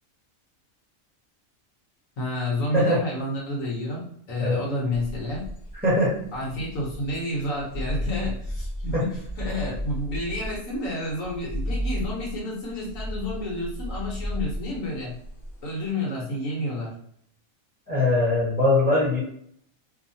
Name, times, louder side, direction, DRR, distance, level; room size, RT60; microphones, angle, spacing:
voice 1, 2.2-5.4 6.3-15.1 15.6-16.9, left 1 dB, 70° left, -3 dB, 1.1 m, -30 dB
sound 1, 4.9-15.8, equal, 45° left, 0.7 m, -33 dB
voice 2, 5.8-6.2 8.9-9.0 17.9-19.2, left 2 dB, 10° right, -7 dB, 0.8 m, -21 dB
2.7 x 2.1 x 2.6 m, 0.66 s
omnidirectional pair, 1.4 m